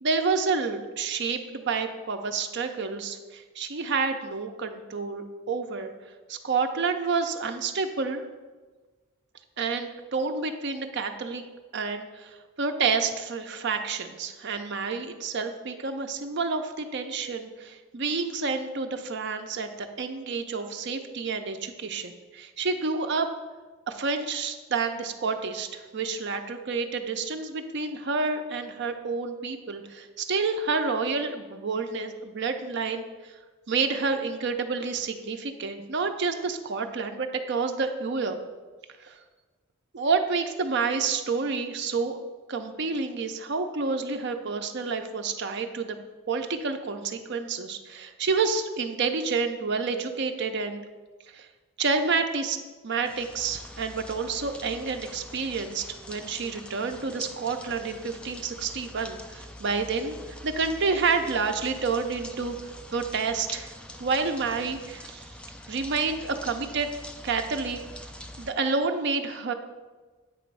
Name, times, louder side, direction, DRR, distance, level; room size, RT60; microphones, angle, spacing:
voice 1, 0.0-5.9 6.3-8.2 9.6-11.4 11.7-23.3 23.9-33.3 33.7-38.4 39.0-39.2 39.9-42.2 42.5-46.0 46.3-50.8 51.3-51.5 51.8-52.6 52.8-60.2 60.4-62.6 62.9-63.7 64.0-65.2 65.7-66.9 67.2-67.8 68.4-69.5, right 4 dB, 55° right, 6 dB, 0.6 m, -29 dB
sound 1, 53.0-68.5, left 1 dB, 5° left, 0.3 m, -44 dB
8.4 x 3.0 x 6.1 m, 1.3 s
head